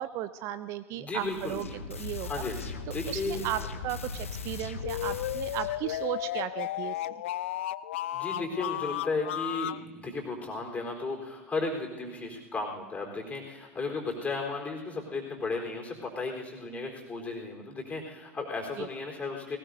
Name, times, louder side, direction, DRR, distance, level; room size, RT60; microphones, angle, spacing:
voice 1, 0.0-2.4 3.1-7.2 18.8-18.9, right 12 dB, 45° right, 13 dB, 0.5 m, -35 dB
voice 2, 0.9-1.7 2.2-3.7 8.1-19.6, left 3 dB, 20° left, 1 dB, 3.9 m, -35 dB
sound 1, 1.2-6.0, left 4 dB, 80° left, 0.9 m, -39 dB
sound 2, 4.8-9.8, left 13 dB, 65° left, 0.3 m, -34 dB
20.0 x 19.0 x 2.7 m, 1.3 s
figure-of-eight pair, 80°, 7 cm